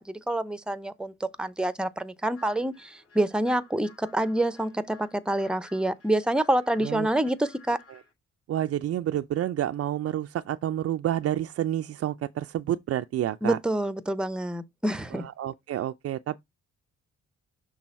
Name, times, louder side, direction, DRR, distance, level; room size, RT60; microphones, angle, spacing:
voice 1, 0.0-7.8 13.4-15.3, right 1 dB, 5° right, 0.7 m, -27 dB
sound 1, 2.3-8.1, left 4 dB, 50° left, 3.0 m, -55 dB
voice 2, 8.5-13.6 15.1-16.4, right 12 dB, 50° right, 0.5 m, -29 dB
6.2 x 3.4 x 5.4 m
cardioid pair, 90°, 30 cm